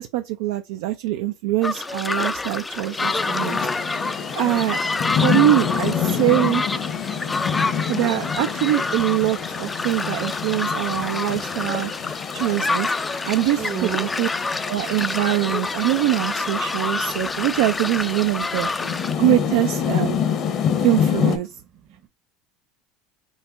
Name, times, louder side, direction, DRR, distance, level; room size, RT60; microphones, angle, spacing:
voice 1, 0.0-3.6 3.9-4.0 4.4-4.8 5.2-6.6 7.9-11.9 12.3-12.9 13.2-14.3 14.7-20.2 20.8-21.5, right 15 dB, 75° right, 0.4 m, -23 dB
sound 1, 1.6-19.1, left 3 dB, 15° left, 0.4 m, -27 dB
Rain, 3.0-21.4, left 8 dB, 50° left, 0.9 m, -28 dB
voice 2, 13.6-14.1 16.6-16.7 17.1-17.4 21.5-22.1, right 7 dB, 50° right, 0.9 m, -36 dB
6.3 x 2.1 x 2.6 m
supercardioid pair, 100°, 0 cm